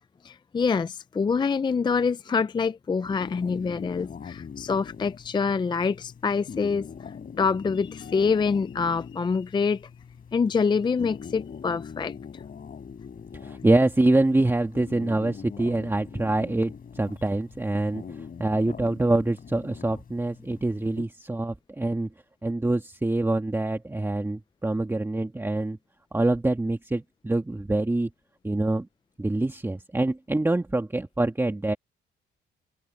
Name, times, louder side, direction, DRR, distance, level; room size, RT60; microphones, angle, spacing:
voice 1, 0.2-9.9 10.3-12.2, left 5 dB, 25° left, 0.4 m, -26 dB
sound 1, 3.1-21.0, left 6 dB, 45° left, 4.7 m, -42 dB
voice 2, 13.4-22.1 22.4-25.8 26.1-28.1 28.4-28.9 29.2-31.8, right 2 dB, 10° right, 1.8 m, -25 dB
cardioid pair, 90°, 20 cm